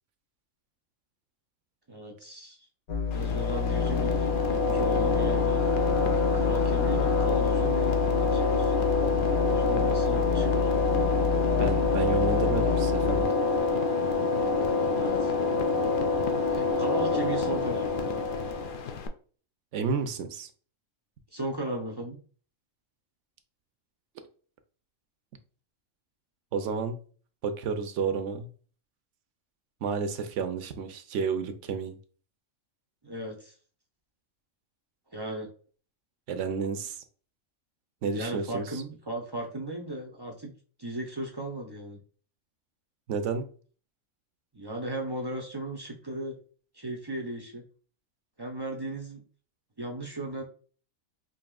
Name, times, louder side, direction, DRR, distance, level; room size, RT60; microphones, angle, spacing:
voice 1, 1.9-2.6 3.1-5.6 6.3-8.8 9.5-10.7 14.9-15.3 16.5-18.3 21.3-22.2 33.0-33.5 35.1-35.5 38.1-40.5 40.8-42.0 44.5-46.3 46.7-47.6 48.4-49.2 49.8-50.4, right 1 dB, 30° right, 1 dB, 0.4 m, -36 dB
sound 1, 2.9-13.2, left 6 dB, 90° left, 1.7 m, -29 dB
sound 2, 3.1-19.1, left 3 dB, 65° left, 0.5 m, -27 dB
voice 2, 11.6-13.3 19.7-20.5 26.5-27.0 27.4-28.5 29.8-32.0 36.3-37.0 38.0-38.8 43.1-43.5, right 5 dB, 70° right, 8 dB, 0.9 m, -31 dB
5.2 x 2.7 x 2.3 m, 0.41 s
omnidirectional pair, 1.4 m